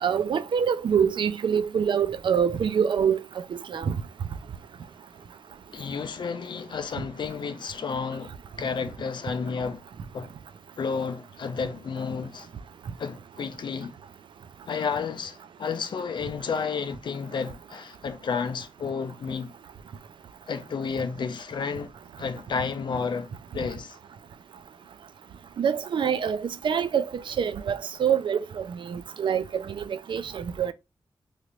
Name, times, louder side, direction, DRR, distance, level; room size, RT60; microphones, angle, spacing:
voice 1, 0.0-3.2 3.5-3.9 25.6-30.7, right 7 dB, 70° right, 0.4 m, -25 dB
voice 2, 5.7-8.3 8.6-9.8 10.1-10.3 10.8-12.5 13.0-13.9 14.7-19.5 20.5-21.9 22.2-24.0, left 5 dB, 65° left, 0.4 m, -31 dB
3.2 x 2.5 x 2.8 m
wide cardioid pair, 105°, 9 cm